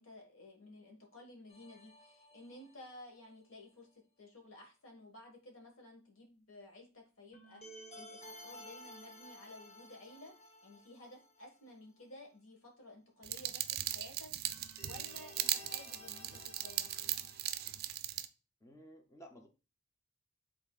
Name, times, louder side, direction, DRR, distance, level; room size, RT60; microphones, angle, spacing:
voice 1, 0.0-7.6 7.9-10.3 10.6-17.1, left 1 dB, 80° left, 2 dB, 1.5 m, -55 dB
sound 1, 1.5-3.3 7.3-11.7 12.0-12.1 14.5-17.8, left 1 dB, 30° left, 0.9 m, -54 dB
sound 2, 13.2-18.3, right 12 dB, 50° right, 0.4 m, -38 dB
voice 2, 18.6-19.5, right 1 dB, 15° left, 4 dB, 0.5 m, -55 dB
5.9 x 3.9 x 2.3 m, 0.32 s
head